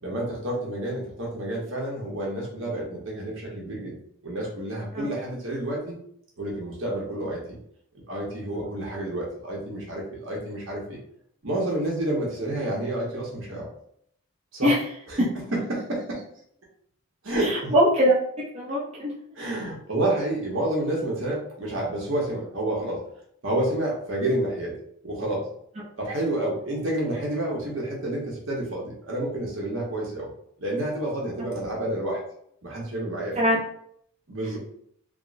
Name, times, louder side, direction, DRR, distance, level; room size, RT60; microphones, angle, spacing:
voice 1, 0.0-4.0 4.2-6.0 6.4-7.6 7.9-11.0 11.4-13.7 14.5-14.7 15.1-16.2 17.2-17.7 19.4-23.0 23.4-24.8 25.0-25.5 26.0-30.3 30.6-32.2 32.6-33.4 34.3-34.6, right 1 dB, 60° right, -2 dB, 1.0 m, -29 dB
voice 2, 17.4-18.1 18.5-19.1 33.3-33.6, equal, 30° right, -4 dB, 0.5 m, -21 dB
3.5 x 2.1 x 2.5 m, 0.66 s
head